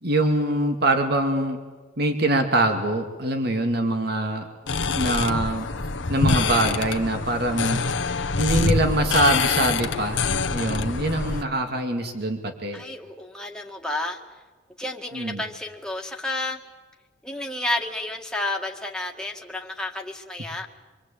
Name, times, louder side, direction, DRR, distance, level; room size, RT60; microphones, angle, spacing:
voice 1, 0.0-1.6 2.0-4.5 4.9-5.7 6.1-12.8 15.1-15.4, right 1 dB, 60° right, 5 dB, 2.4 m, -24 dB
sound 1, 4.7-11.4, left 4 dB, 85° left, 1.2 m, -25 dB
voice 2, 12.7-14.2 14.8-16.6 17.2-20.7, left 2 dB, 5° left, 1 dB, 2.0 m, -31 dB
26.0 x 23.5 x 8.6 m, 1.3 s
head